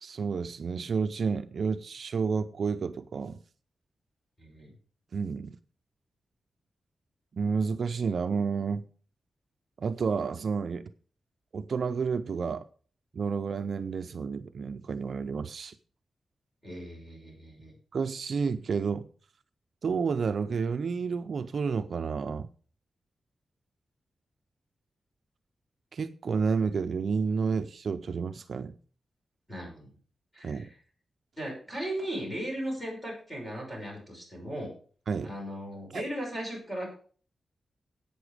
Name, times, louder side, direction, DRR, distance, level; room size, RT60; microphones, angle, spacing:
voice 1, 0.0-3.4 5.1-5.6 7.3-8.9 9.8-10.9 11.5-12.7 13.1-15.7 17.9-19.1 19.8-22.5 25.9-28.8 30.4-30.7 35.1-35.3 35.9-36.0, right 5 dB, 50° right, 0.5 m, -30 dB
voice 2, 4.4-4.7 16.6-17.7 29.5-29.9 30.3-30.8 31.4-34.7 35.2-36.9, equal, 15° left, 5.9 m, -37 dB
11.5 x 8.5 x 4.9 m
wide cardioid pair, 175°, 0 cm